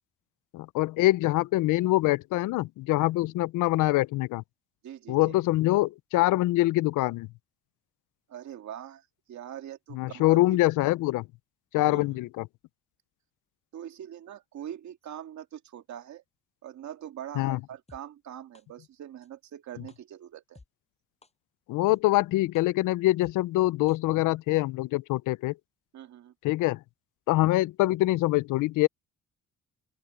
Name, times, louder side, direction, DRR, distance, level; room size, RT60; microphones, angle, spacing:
voice 1, 0.5-4.4 5.1-7.3 9.9-11.2 11.7-12.5 17.4-17.6 21.7-25.5 26.4-26.8 27.3-28.9, left 18 dB, 85° left, 0.5 m, -24 dB
voice 2, 4.8-5.4 8.3-10.6 11.9-12.2 13.7-16.2 16.6-20.6 25.9-26.3, right 10 dB, 70° right, 2.1 m, -43 dB
sound 1, 17.9-18.0 18.5-18.6 19.2-19.3 19.9-20.0 20.5-20.7 21.2-21.3 21.9-22.0 22.5-22.6 23.2-23.3 23.9-24.0 24.5-24.6, left 3 dB, 20° left, 7.3 m, -54 dB
open air
cardioid pair, 90°, 30 cm